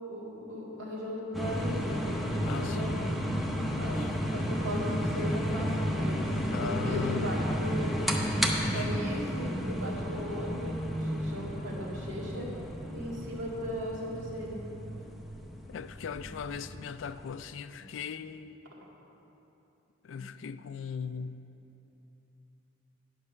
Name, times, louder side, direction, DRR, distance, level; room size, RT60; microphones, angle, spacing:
voice 1, 0.0-2.9 3.8-4.0 4.3-6.3 6.6-8.0 8.6-12.5 12.9-14.6 17.8-17.9 20.2-20.3, left 1 dB, 85° right, -4 dB, 2.1 m, -37 dB
sound 1, 1.3-17.3, equal, ahead, 0.6 m, -32 dB
voice 2, 2.4-3.0 3.9-4.1 6.5-7.3 8.6-9.1 15.7-18.6 20.0-21.5, left 6 dB, 70° left, 13 dB, 0.3 m, -39 dB
9.8 x 5.4 x 6.7 m, 3.0 s
head